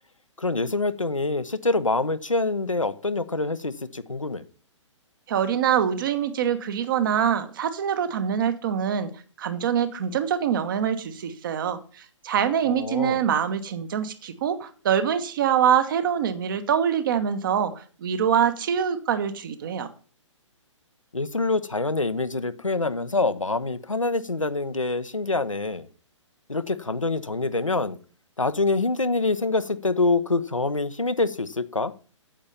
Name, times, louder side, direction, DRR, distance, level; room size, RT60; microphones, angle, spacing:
voice 1, 0.4-4.4 12.6-13.2 21.1-25.9 26.5-28.0 28.4-31.9, left 3 dB, 85° left, 0.9 m, -25 dB
voice 2, 5.3-19.9, right 8 dB, 40° right, 1.3 m, -24 dB
8.9 x 7.5 x 6.9 m
figure-of-eight pair, 125°, 16 cm